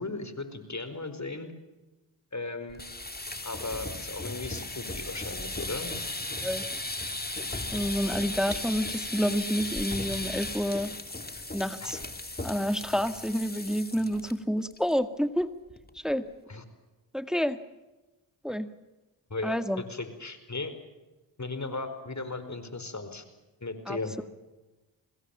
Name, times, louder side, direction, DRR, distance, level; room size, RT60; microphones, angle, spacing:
voice 1, 0.0-1.5 2.3-2.8 3.4-5.9 11.8-12.0 16.5-16.6 19.3-20.7 21.4-23.2 23.6-24.2, left 3 dB, 35° left, 10 dB, 5.0 m, -36 dB
sound 1, 2.7-14.3 14.6-14.9 15.2-15.3 15.7-16.1, left 2 dB, 20° left, 3.1 m, -36 dB
voice 2, 7.7-10.9 11.5-12.0 12.4-15.5 15.9-16.3 17.1-17.6 18.4-18.7 19.4-19.8 23.9-24.0, equal, ahead, 11 dB, 1.9 m, -29 dB
25.5 x 21.0 x 7.3 m, 1.1 s
supercardioid pair, 40°, 49 cm